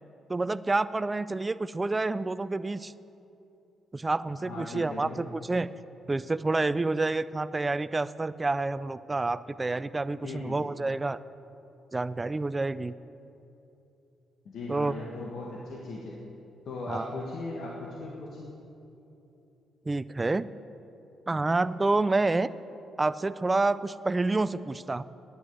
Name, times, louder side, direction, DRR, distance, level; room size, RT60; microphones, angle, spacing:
voice 1, 0.3-2.9 3.9-5.7 6.1-11.2 11.9-12.9 14.7-14.9 16.9-17.1 19.9-20.5 21.3-22.5 23.0-25.0, right 3 dB, 20° right, 16 dB, 0.3 m, -28 dB
voice 2, 4.4-5.2 10.2-10.6 14.5-16.2 16.6-18.5, left 2 dB, 70° left, -3 dB, 1.6 m, -38 dB
9.6 x 9.5 x 7.7 m, 2.9 s
cardioid pair, 90°, 0 cm